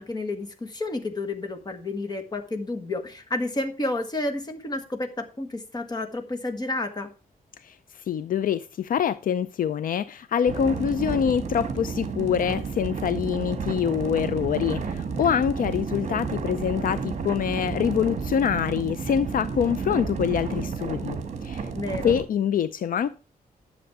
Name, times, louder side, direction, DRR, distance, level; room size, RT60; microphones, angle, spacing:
voice 1, 0.0-7.1 21.7-22.2, left 2 dB, 25° left, 1.5 m, -31 dB
voice 2, 7.6-21.2 21.4-21.7 22.0-23.1, left 8 dB, 65° left, 0.5 m, -25 dB
sound 1, 10.5-22.3, right 5 dB, 50° right, 1.5 m, -31 dB
10.5 x 7.2 x 4.7 m
wide cardioid pair, 155°, 15 cm